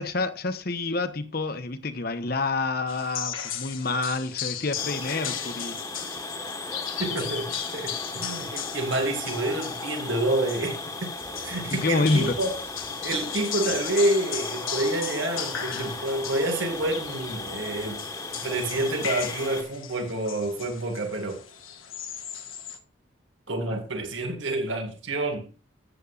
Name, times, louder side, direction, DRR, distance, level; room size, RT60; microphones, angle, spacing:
voice 1, 0.0-5.8 11.7-12.3, left 3 dB, 45° left, 1.0 m, -28 dB
sound 1, 2.9-22.8, left 8 dB, 80° left, 1.3 m, -37 dB
sound 2, 4.7-19.6, left 3 dB, 15° left, 1.4 m, -36 dB
voice 2, 7.0-11.1 11.4-12.5 13.0-18.0 18.4-21.4 23.5-25.5, right 2 dB, 70° right, 2.0 m, -28 dB
14.0 x 8.1 x 2.5 m
head